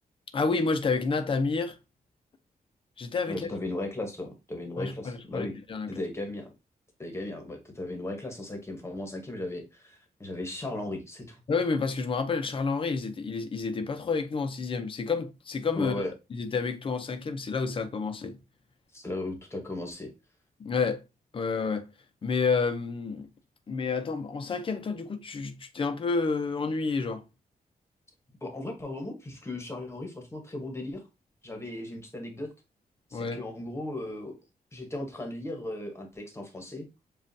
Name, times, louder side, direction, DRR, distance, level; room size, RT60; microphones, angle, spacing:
voice 1, 0.3-1.8 3.0-3.5 4.8-5.9 11.5-15.9 16.3-18.4 20.6-21.0 21.3-21.9 22.2-23.3 23.7-27.2 33.1-33.4, left 4 dB, 35° left, 0.6 m, -29 dB
voice 2, 3.3-5.5 5.9-6.5 7.0-11.4 15.7-16.1 18.9-20.1 28.4-31.0 31.4-32.5 33.1-34.3 34.7-36.8, left 1 dB, 15° left, 1.1 m, -36 dB
7.3 x 2.5 x 2.7 m
wide cardioid pair, 160°, 15 cm